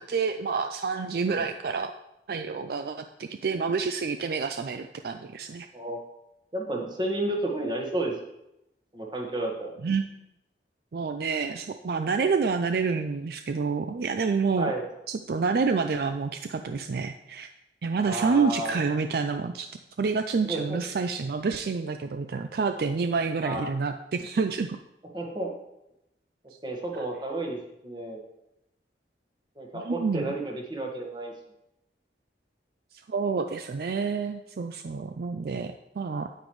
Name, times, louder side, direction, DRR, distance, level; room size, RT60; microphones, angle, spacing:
voice 1, 0.0-1.9 2.3-5.7 9.8-10.2 10.9-14.7 15.1-17.5 17.8-19.7 20.0-24.8 27.0-27.1 29.7-30.4 32.9-36.3, right 5 dB, 60° right, 7 dB, 0.4 m, -28 dB
voice 2, 6.5-8.1 8.9-9.7 14.6-14.9 18.0-18.7 20.4-20.8 23.4-23.7 25.1-25.5 26.6-27.6 27.8-28.2 29.6-31.3, right 1 dB, 25° right, 0 dB, 1.5 m, -31 dB
9.1 x 8.8 x 3.1 m, 0.86 s
head